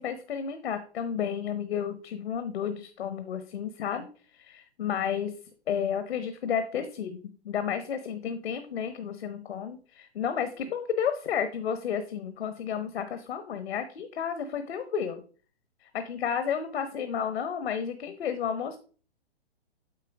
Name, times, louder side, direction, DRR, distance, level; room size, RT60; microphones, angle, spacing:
voice 1, 0.0-4.1 4.3-5.3 5.7-7.2 7.4-15.2 15.8-18.8, left 8 dB, 65° left, 9 dB, 1.1 m, -32 dB
8.3 x 4.7 x 4.8 m, 0.40 s
hypercardioid pair, 130°, 33 cm